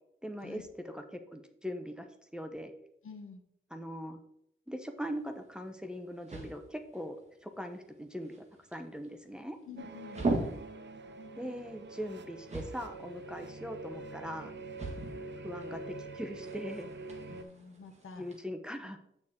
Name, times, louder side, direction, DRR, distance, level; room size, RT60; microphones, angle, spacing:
voice 1, 0.2-2.1 2.3-2.7 3.7-4.2 4.7-7.2 7.4-8.4 8.7-9.6 11.3-14.5 15.4-16.9 18.2-19.0, equal, 5° right, 6 dB, 0.7 m, -41 dB
voice 2, 3.0-3.4 9.6-10.5 17.3-18.3, left 5 dB, 80° left, 7 dB, 1.1 m, -48 dB
sound 1, 5.0-18.4, right 2 dB, 35° right, 1.6 m, -42 dB
sound 2, 9.8-17.4, right 3 dB, 60° right, 0.6 m, -45 dB
8.2 x 6.6 x 3.6 m, 0.76 s
wide cardioid pair, 165°, 21 cm